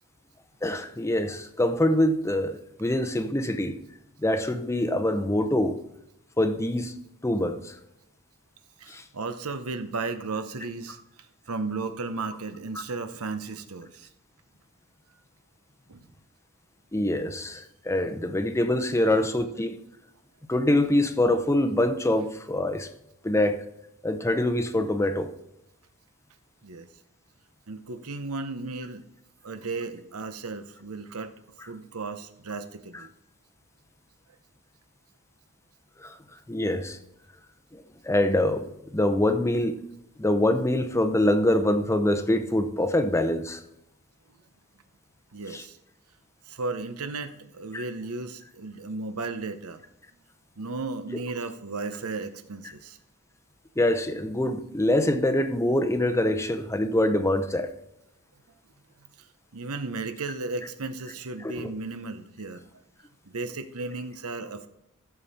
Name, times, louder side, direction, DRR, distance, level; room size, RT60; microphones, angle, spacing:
voice 1, 0.6-3.8 4.2-5.8 6.4-7.0 7.2-7.7 8.9-9.0 16.9-19.7 20.5-22.9 23.2-23.6 24.0-25.3 36.0-36.1 36.5-37.0 37.7-38.6 38.9-39.7 40.2-43.6 45.5-45.6 47.7-47.8 53.8-57.7 61.4-61.7, left 1 dB, 15° left, 0.7 m, -24 dB
voice 2, 8.8-14.1 15.9-16.0 19.2-19.3 26.6-26.9 27.7-29.0 29.4-31.3 31.7-33.1 45.3-45.8 46.5-49.8 50.6-53.0 59.2-59.3 59.5-62.8 63.2-64.7, right 3 dB, 75° right, 0.9 m, -35 dB
14.5 x 7.1 x 4.2 m
head